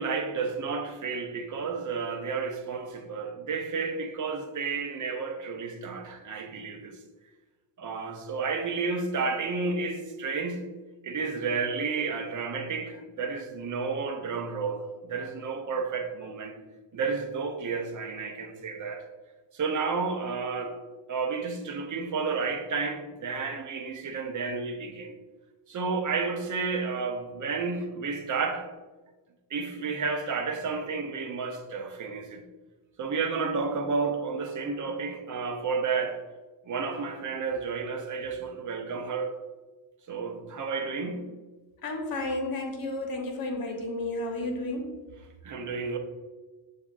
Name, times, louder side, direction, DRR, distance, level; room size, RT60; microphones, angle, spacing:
voice 1, 0.0-7.0 7.8-10.6 11.0-16.6 16.9-19.0 19.5-20.8 21.1-25.2 25.7-28.7 29.5-32.4 33.0-36.2 36.6-39.4 40.1-41.3 45.4-46.0, right 4 dB, 40° right, 0.7 m, -31 dB
voice 2, 41.8-45.0, left 2 dB, 45° left, 1.1 m, -32 dB
6.9 x 2.5 x 2.5 m
cardioid pair, 80°, 47 cm